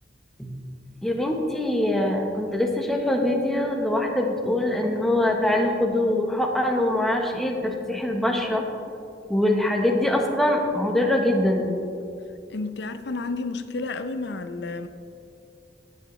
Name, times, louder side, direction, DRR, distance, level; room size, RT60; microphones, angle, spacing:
voice 1, 1.0-8.6 9.3-11.7, left 1 dB, ahead, 1 dB, 1.0 m, -23 dB
voice 2, 12.5-14.9, left 3 dB, 70° left, 10 dB, 0.6 m, -31 dB
16.0 x 8.3 x 3.1 m, 2.6 s
head